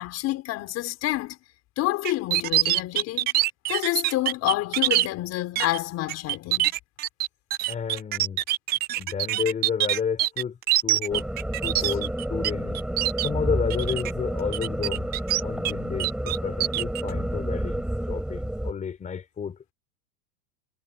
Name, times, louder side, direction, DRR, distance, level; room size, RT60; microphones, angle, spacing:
voice 1, 0.0-1.4 1.8-3.3 3.7-6.7 11.8-11.9, left 16 dB, 40° left, 5.3 m, -28 dB
sound 1, 2.0-5.1 5.6-5.8 6.1-12.5 12.7-13.3 13.7-14.1 14.5-15.7 16.0-17.0, right 15 dB, 25° right, 0.5 m, -24 dB
voice 2, 7.7-8.4 9.0-10.6 10.8-11.3 11.6-12.8 13.2-15.1 15.4-17.8 18.1-19.7, left 7 dB, 20° left, 4.2 m, -31 dB
sound 2, 11.1-18.7, right 1 dB, ahead, 4.4 m, -30 dB
supercardioid pair, 155°, 41 cm